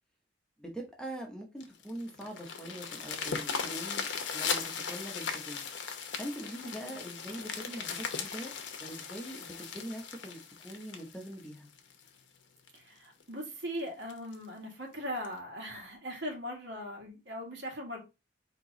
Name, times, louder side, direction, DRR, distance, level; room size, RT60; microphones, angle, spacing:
voice 1, 0.6-4.1 4.3-5.6 6.2-8.5 8.8-11.7, right 1 dB, 5° left, 0.9 m, -43 dB
sound 1, 1.6-12.1 12.7-12.8 13.2-13.3 13.6-13.7 14.1-14.4 15.2-15.3, left 6 dB, 75° left, 0.8 m, -38 dB
voice 2, 6.6-6.9 12.7-18.0, equal, 65° right, 1.8 m, -40 dB
4.5 x 3.0 x 3.9 m
head